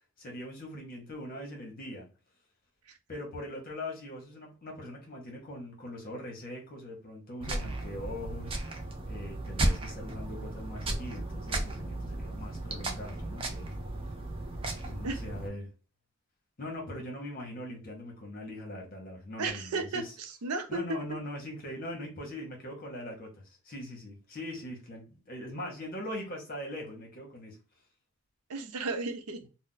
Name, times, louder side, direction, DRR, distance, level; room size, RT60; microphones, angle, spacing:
voice 1, 0.2-2.1 3.1-8.6 9.1-13.7 14.8-15.7 16.6-20.1 20.7-27.6, left 1 dB, 40° left, 1.0 m, -41 dB
sound 1, 7.4-15.5, right 2 dB, 25° right, 0.4 m, -35 dB
voice 2, 19.4-20.8 28.5-29.4, right 3 dB, 85° right, 0.6 m, -34 dB
2.5 x 2.1 x 3.8 m
head